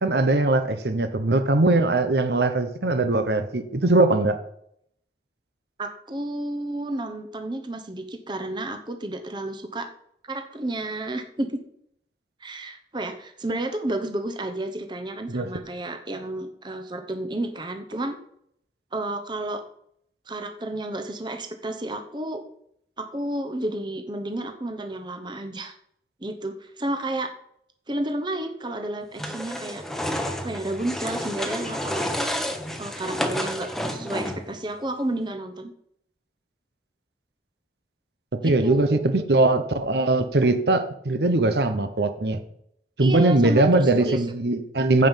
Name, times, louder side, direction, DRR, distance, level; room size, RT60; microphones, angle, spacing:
voice 1, 0.0-4.4 15.3-15.5 38.4-42.4 43.0-45.1, right 2 dB, 65° right, 8 dB, 0.9 m, -21 dB
voice 2, 5.8-9.9 10.3-11.6 12.4-18.2 18.9-19.6 20.3-22.4 23.0-25.7 26.2-27.3 27.9-29.8 30.4-32.0 32.8-35.7 38.4-39.1 43.0-44.2, right 1 dB, 25° right, 6 dB, 1.0 m, -31 dB
sound 1, 29.2-34.6, left 1 dB, ahead, 1.0 m, -30 dB
15.0 x 5.4 x 5.7 m, 0.71 s
head